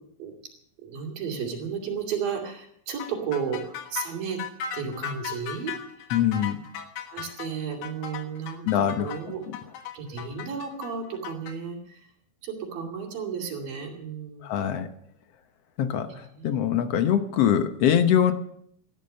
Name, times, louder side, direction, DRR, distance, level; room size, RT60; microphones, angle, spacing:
voice 1, 0.8-4.4 4.7-6.1 7.1-9.4 9.9-12.1 12.4-14.8 16.1-16.5, right 6 dB, 85° right, -1 dB, 4.5 m, -33 dB
sound 1, 3.0-11.6, left 8 dB, 85° left, 3.2 m, -37 dB
voice 2, 6.1-6.6 8.7-9.1 14.4-14.9 15.8-18.3, left 9 dB, 65° left, 9 dB, 1.6 m, -23 dB
16.5 x 12.0 x 6.7 m, 0.69 s
omnidirectional pair, 3.9 m